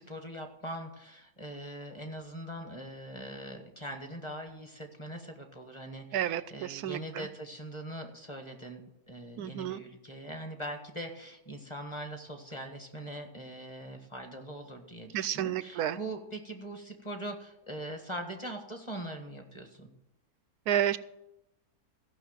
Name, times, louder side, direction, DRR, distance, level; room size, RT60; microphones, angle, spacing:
voice 1, 0.0-19.9, right 1 dB, 20° left, 4 dB, 1.5 m, -42 dB
voice 2, 6.1-7.3 9.4-9.8 15.1-16.0 20.7-21.0, right 11 dB, 90° right, 15 dB, 1.2 m, -31 dB
15.0 x 6.1 x 7.4 m, 0.88 s
omnidirectional pair, 1.6 m